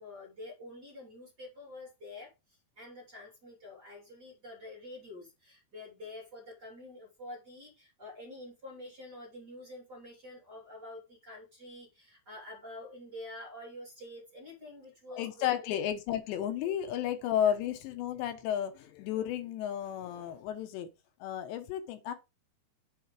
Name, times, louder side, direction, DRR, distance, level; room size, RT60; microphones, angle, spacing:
voice 1, 0.0-15.6 16.6-16.7 17.4-17.6, left 2 dB, 25° right, 2.9 m, -47 dB
voice 2, 15.1-20.9 21.2-22.1, left 10 dB, 80° left, 3.2 m, -33 dB
7.7 x 4.4 x 5.0 m
omnidirectional pair, 5.0 m